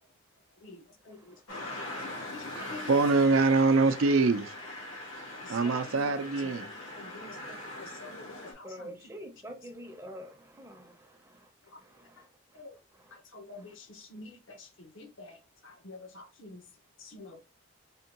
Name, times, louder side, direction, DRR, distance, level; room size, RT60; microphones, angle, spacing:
voice 1, 1.1-1.8 2.3-2.9 5.4-6.7 6.9-8.9 12.5-12.7 13.3-15.4 15.6-16.6 17.0-17.4, left 3 dB, 70° left, 0.7 m, -47 dB
sound 1, 1.5-8.5, left 1 dB, 90° left, 1.1 m, -41 dB
voice 2, 2.6-4.5 5.5-6.7, right 3 dB, 80° right, 0.4 m, -24 dB
voice 3, 8.6-11.5 11.8-12.3 12.9-13.2 13.6-13.7, equal, 15° right, 0.5 m, -47 dB
3.5 x 2.2 x 2.8 m
head